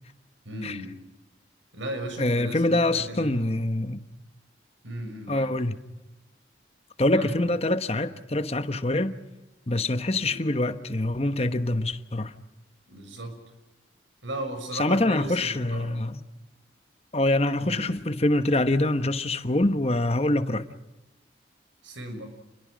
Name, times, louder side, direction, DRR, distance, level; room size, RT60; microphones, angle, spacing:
voice 1, 0.4-1.0 1.7-3.5 4.8-5.5 7.1-7.3 10.2-10.4 12.9-13.4 14.2-16.0 17.6-18.0 21.8-22.3, right 1 dB, 90° right, 6.1 m, -36 dB
voice 2, 2.2-4.0 5.3-5.8 7.0-9.2 9.7-12.3 14.7-16.2 17.1-20.7, left 1 dB, 35° left, 1.1 m, -25 dB
29.0 x 21.5 x 6.3 m
head